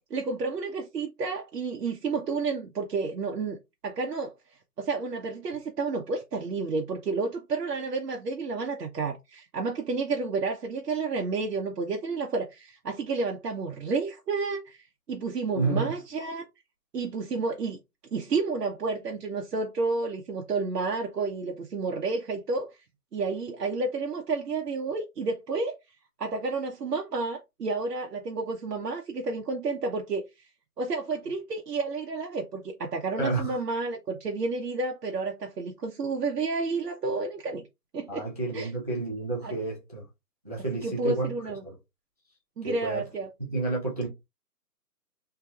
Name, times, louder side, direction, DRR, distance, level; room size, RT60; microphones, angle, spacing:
voice 1, 0.1-3.6 3.8-4.3 4.8-16.5 16.9-17.8 18.1-22.7 23.1-25.8 26.2-30.2 30.8-37.6 37.9-38.3 38.5-38.7 39.4-39.5 40.8-41.6 42.6-43.3, right 4 dB, 70° right, 0.9 m, -30 dB
voice 2, 15.5-16.0 33.2-33.5 38.1-40.0 40.4-41.7 42.6-43.1 43.4-44.1, right 3 dB, 25° right, 0.6 m, -30 dB
3.3 x 2.8 x 2.3 m
hypercardioid pair, 170°, 49 cm